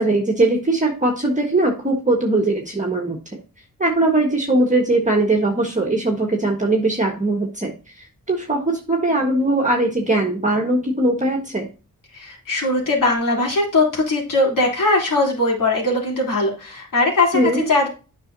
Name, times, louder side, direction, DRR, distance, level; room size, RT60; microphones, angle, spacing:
voice 1, 0.0-3.2 3.8-7.7 8.3-11.7 17.3-17.7, right 2 dB, 20° right, 1 dB, 1.5 m, -20 dB
voice 2, 12.1-17.9, left 2 dB, 60° left, -2 dB, 3.4 m, -20 dB
8.8 x 5.7 x 2.7 m, 0.33 s
cardioid pair, 65°, 36 cm